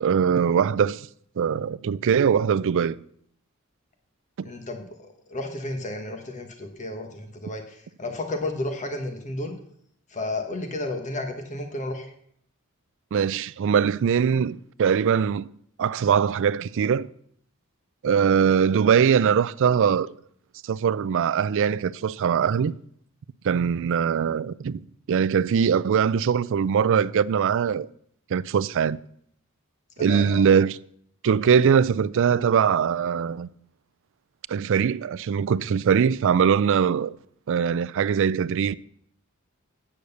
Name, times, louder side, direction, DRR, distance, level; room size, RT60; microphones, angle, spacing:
voice 1, 0.0-1.1 1.4-3.0 13.1-15.5 15.8-17.1 18.0-20.1 20.6-22.7 23.4-27.9 28.3-29.0 30.0-30.8 31.2-33.5 34.5-37.2 37.5-38.7, right 7 dB, 60° right, 0.4 m, -22 dB
voice 2, 4.4-9.5 10.1-12.1 30.0-30.4, left 2 dB, 35° left, 1.2 m, -32 dB
8.7 x 6.4 x 6.7 m
head